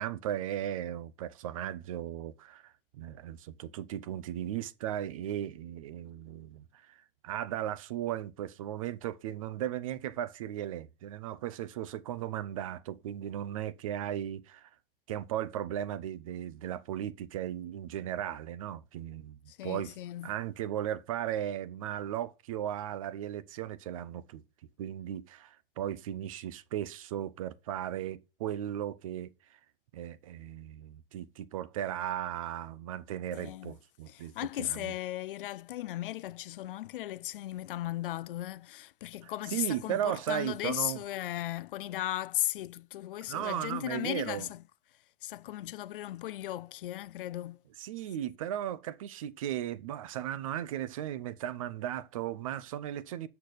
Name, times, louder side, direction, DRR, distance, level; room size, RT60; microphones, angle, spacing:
voice 1, 0.0-14.7 15.1-19.9 20.2-24.4 24.8-29.6 29.9-34.9 39.2-41.0 43.3-44.5 47.8-53.3, right 11 dB, 35° right, 0.5 m, -36 dB
voice 2, 19.5-20.3 33.3-33.7 34.1-44.6 45.2-47.6, left 14 dB, 65° left, 0.5 m, -36 dB
8.1 x 6.6 x 4.0 m
supercardioid pair, 170°, 29 cm